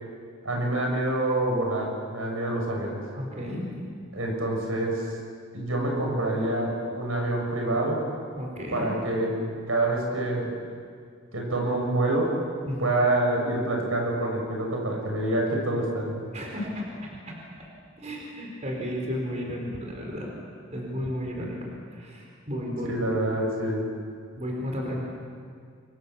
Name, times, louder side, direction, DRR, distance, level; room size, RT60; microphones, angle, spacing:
voice 1, 0.4-3.0 4.1-5.0 5.5-8.0 8.7-10.6 11.3-12.4 12.8-16.3 22.9-23.9, right 1 dB, 80° right, 0 dB, 6.8 m, -26 dB
voice 2, 3.1-3.7 8.4-9.0 12.7-12.9 16.3-17.4 18.0-20.3 20.7-21.6 21.9-23.1 24.4-25.0, equal, 35° right, -1 dB, 4.7 m, -33 dB
29.5 x 24.0 x 7.2 m, 2.1 s
head